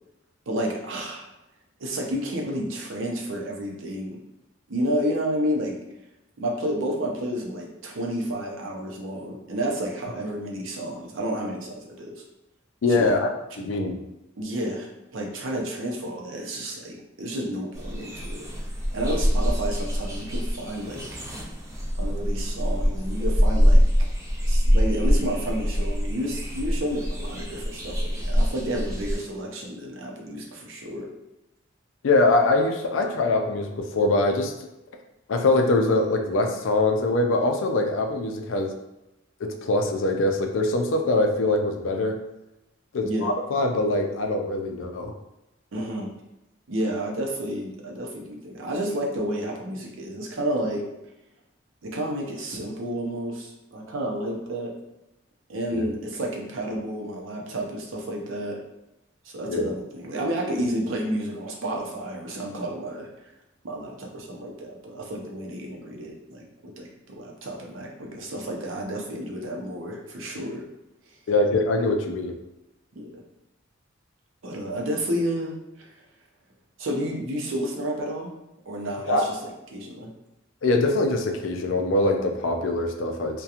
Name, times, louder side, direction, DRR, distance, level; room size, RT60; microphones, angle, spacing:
voice 1, 0.5-1.3 1.8-4.2 4.7-5.8 6.4-12.2 12.9-13.1 14.4-18.5 18.9-21.0 22.0-23.8 24.4-31.1 43.0-43.3 45.7-46.1 46.7-50.9 51.8-54.7 55.5-58.6 59.2-63.1 63.6-70.6 72.9-73.2 74.4-75.9 76.8-78.3 78.7-80.1, right 1 dB, 80° right, -1 dB, 0.6 m, -31 dB
voice 2, 12.8-13.3 13.6-14.0 32.0-34.5 35.3-38.7 39.4-42.2 42.9-45.1 55.7-55.8 59.5-59.7 71.3-72.3 79.1-79.3 80.6-83.4, left 2 dB, 75° left, 4 dB, 0.4 m, -23 dB
sound 1, 17.7-29.2, equal, 15° right, 0.4 m, -24 dB
2.8 x 2.2 x 2.4 m, 0.94 s
head